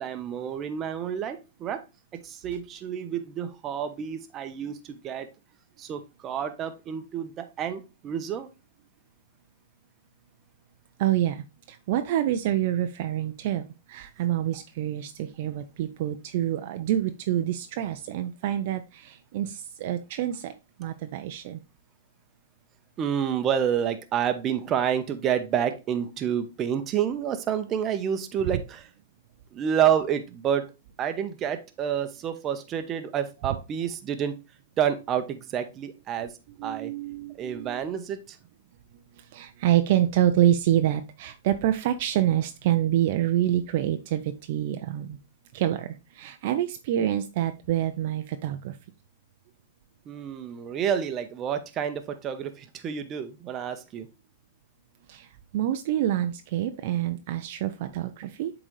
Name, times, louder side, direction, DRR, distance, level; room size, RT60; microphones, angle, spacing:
voice 1, 0.0-1.8 2.2-5.3 5.8-8.5 23.0-28.9 29.5-30.6 31.0-34.4 34.8-36.3 36.6-36.9 37.4-38.4 50.1-54.1, right 9 dB, 25° right, 0.8 m, -29 dB
voice 2, 11.0-13.6 13.9-20.5 20.8-21.6 36.6-37.8 39.2-45.2 45.5-48.8 55.1-55.3 55.5-58.5, right 12 dB, 55° right, 0.5 m, -27 dB
7.5 x 3.9 x 3.2 m
hypercardioid pair, 135°, 0 cm